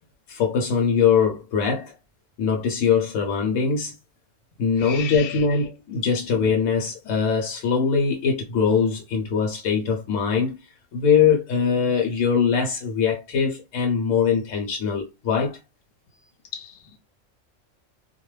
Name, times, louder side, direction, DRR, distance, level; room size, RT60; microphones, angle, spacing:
voice 1, 0.3-1.9 2.4-3.9 4.6-10.6 10.9-15.6, left 6 dB, 80° left, 1.0 m, -22 dB
voice 2, 4.8-5.6 16.5-17.0, left 8 dB, 60° left, 0.7 m, -36 dB
2.4 x 2.1 x 3.1 m
omnidirectional pair, 1.3 m